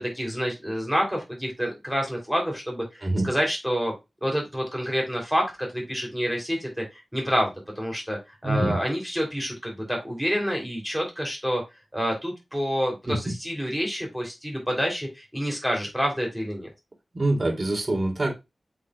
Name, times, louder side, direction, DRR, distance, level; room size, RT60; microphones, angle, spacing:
voice 1, 0.0-3.9 4.2-6.8 7.1-11.6 11.9-16.7, equal, ahead, 3.2 m, -28 dB
voice 2, 8.4-8.7 13.1-13.2 17.1-18.3, right 2 dB, 35° right, 2.7 m, -24 dB
7.8 x 5.1 x 2.3 m
wide cardioid pair, 95°, 0 cm